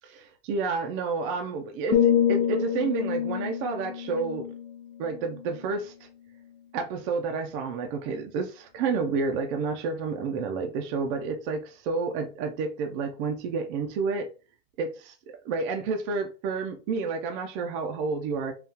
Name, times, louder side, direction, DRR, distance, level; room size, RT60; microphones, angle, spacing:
voice 1, 0.0-4.5 5.0-5.9 6.7-14.3 14.8-18.5, right 4 dB, 35° right, 0.4 m, -30 dB
sound 1, 1.9-5.9 6.3-6.6, left 9 dB, 80° left, 0.6 m, -27 dB
3.7 x 2.2 x 2.7 m
supercardioid pair, 150°, 37 cm